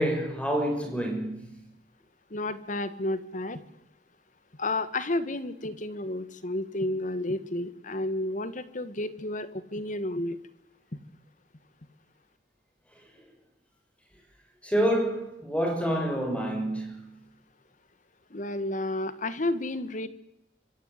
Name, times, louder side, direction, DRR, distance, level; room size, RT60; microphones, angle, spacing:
voice 1, 0.0-1.5 14.6-17.1, equal, 5° left, 6.7 m, -27 dB
voice 2, 2.3-3.6 4.6-10.4 18.3-20.1, left 1 dB, 45° left, 1.7 m, -31 dB
26.0 x 25.5 x 8.3 m
head